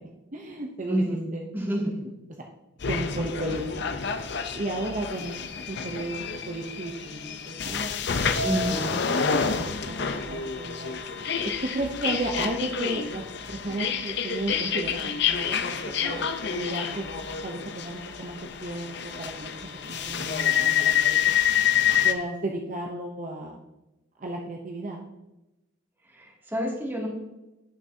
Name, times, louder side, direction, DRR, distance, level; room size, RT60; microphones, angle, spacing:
voice 1, 0.3-1.0 1.3-1.6 2.9-3.8 4.5-5.3 5.7-8.1 8.7-9.6 9.9-10.9 11.7-13.2 13.5-15.0 15.3-15.8 16.0-17.0 17.4-19.5 19.9-21.2 22.0-23.6 24.2-25.0, right 1 dB, 40° right, 1 dB, 0.8 m, -34 dB
voice 2, 0.9-1.2 1.5-1.9 8.4-9.0 26.1-27.1, right 1 dB, 10° right, -4 dB, 2.4 m, -28 dB
sound 1, 2.8-22.1, left 7 dB, 60° left, 0.7 m, -28 dB
17.0 x 6.0 x 2.8 m, 0.98 s
head